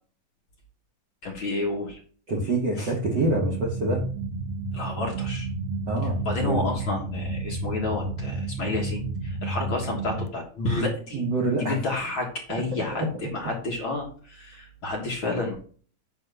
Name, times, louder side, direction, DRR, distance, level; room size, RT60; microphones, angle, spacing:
voice 1, 1.2-2.0 2.8-2.9 4.7-5.5 6.2-11.2 11.6-15.6, left 2 dB, 50° left, 0 dB, 1.9 m, -30 dB
voice 2, 2.3-4.1 5.9-6.2 6.4-6.6 11.1-11.8, right 2 dB, 55° right, 0 dB, 1.2 m, -26 dB
sound 1, 3.0-10.3, right 2 dB, 75° right, 1.8 m, -31 dB
8.9 x 3.5 x 6.6 m, 0.43 s
omnidirectional pair, 3.8 m